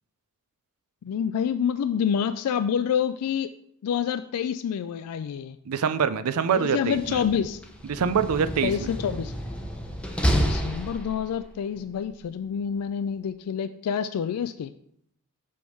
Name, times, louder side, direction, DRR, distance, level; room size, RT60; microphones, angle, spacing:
voice 1, 1.0-3.5 3.8-5.6 6.5-7.6 8.6-9.3 10.4-14.7, left 8 dB, 80° left, 12 dB, 0.3 m, -27 dB
voice 2, 5.7-7.2 7.9-8.7, right 6 dB, 75° right, 13 dB, 0.5 m, -24 dB
Slam, 6.8-11.5, equal, 5° left, 0.8 m, -29 dB
7.6 x 3.5 x 5.4 m, 0.71 s
head